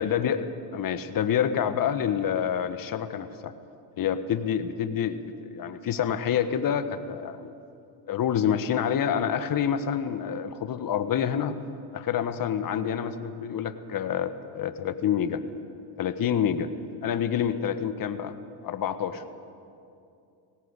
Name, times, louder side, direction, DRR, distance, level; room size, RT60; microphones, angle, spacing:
voice 1, 0.0-3.5 4.0-7.5 8.1-11.6 11.9-15.4 16.0-16.7 17.0-18.4 18.6-19.2, left 8 dB, 45° left, 10 dB, 1.5 m, -27 dB
18.0 x 18.0 x 8.3 m, 2.6 s
supercardioid pair, 80°, 46 cm